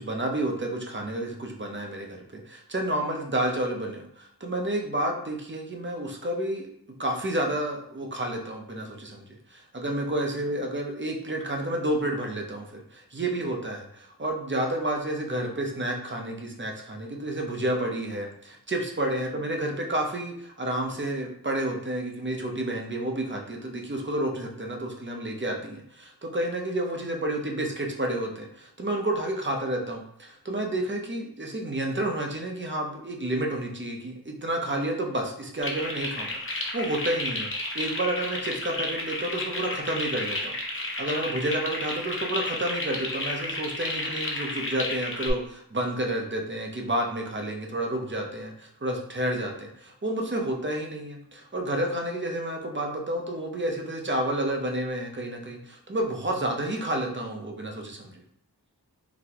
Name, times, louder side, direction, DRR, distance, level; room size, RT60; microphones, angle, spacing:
voice 1, 0.0-6.7 7.0-9.2 9.5-37.5 37.7-58.2, right 1 dB, 30° right, 1 dB, 0.6 m, -30 dB
sound 1, 35.6-45.3, left 2 dB, 30° left, 0.7 m, -32 dB
4.0 x 2.2 x 2.8 m, 0.66 s
wide cardioid pair, 40°, 40 cm